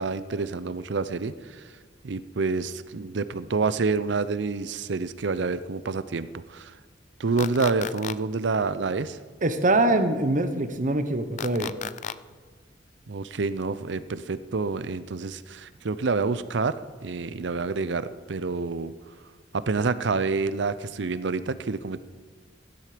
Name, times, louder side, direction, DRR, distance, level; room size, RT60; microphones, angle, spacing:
voice 1, 0.0-1.6 2.0-6.7 7.2-9.2 13.1-16.8 17.0-18.9 19.5-22.0, right 4 dB, 65° right, 14 dB, 0.6 m, -28 dB
sound 1, 7.4-8.1 11.4-12.1, left 8 dB, 40° left, 0.3 m, -33 dB
voice 2, 9.4-11.7, right 2 dB, 45° right, 8 dB, 1.0 m, -23 dB
16.0 x 10.5 x 5.1 m, 1.5 s
head